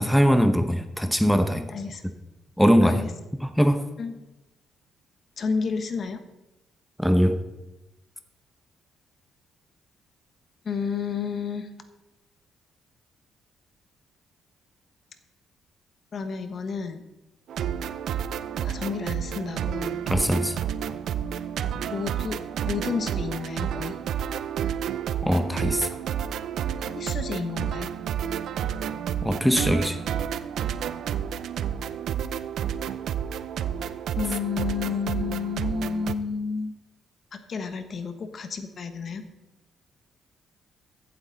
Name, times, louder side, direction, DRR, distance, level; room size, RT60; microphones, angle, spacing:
voice 1, 0.0-1.7 2.6-3.0 3.4-3.9 7.0-7.4 20.1-20.6 25.2-25.9 29.2-30.0, equal, ahead, 8 dB, 0.9 m, -21 dB
voice 2, 1.7-2.0 2.8-3.1 4.0-4.1 5.4-6.2 10.6-11.7 16.1-17.0 18.6-20.0 21.9-22.4 22.6-24.0 26.8-27.9 34.1-36.7 37.3-39.2, left 5 dB, 50° left, 8 dB, 1.3 m, -31 dB
sound 1, 17.5-36.1, right 9 dB, 70° right, 0.5 m, -30 dB
14.5 x 8.1 x 4.0 m, 1.0 s
cardioid pair, 90°, 0 cm